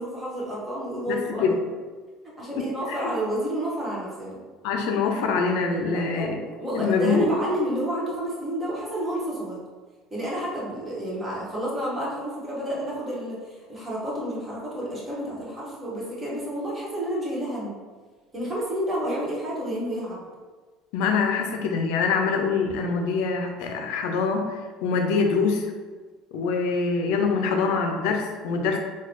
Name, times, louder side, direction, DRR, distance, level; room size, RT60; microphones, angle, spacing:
voice 1, 0.0-1.5 2.4-4.4 5.9-9.6 10.1-17.7 18.3-20.2, equal, 25° right, -6 dB, 1.4 m, -30 dB
voice 2, 1.1-1.6 2.6-3.1 4.6-6.4 6.7-7.3 20.9-25.7 26.3-28.8, left 4 dB, 75° left, 3 dB, 0.4 m, -24 dB
3.8 x 2.2 x 3.1 m, 1.4 s
supercardioid pair, 85°, 0 cm